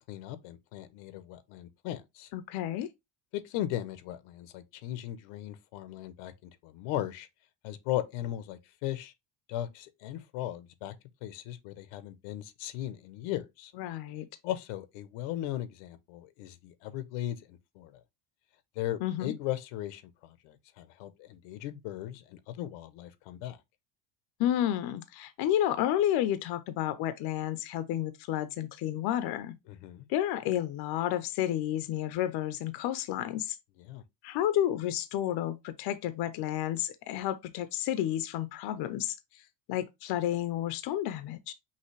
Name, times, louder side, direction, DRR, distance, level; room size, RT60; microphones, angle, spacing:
voice 1, 0.1-2.3 3.3-7.3 7.6-9.1 9.5-10.9 11.2-13.7 14.4-18.0 18.8-23.6 29.7-30.1 33.9-34.0, left 13 dB, 85° left, 0.9 m, -37 dB
voice 2, 2.3-2.9 13.8-14.3 19.0-19.3 24.4-29.6 30.1-33.6 34.2-39.2 39.7-41.5, left 12 dB, 60° left, 0.6 m, -31 dB
5.7 x 2.8 x 3.1 m
cardioid pair, 145°, 45 cm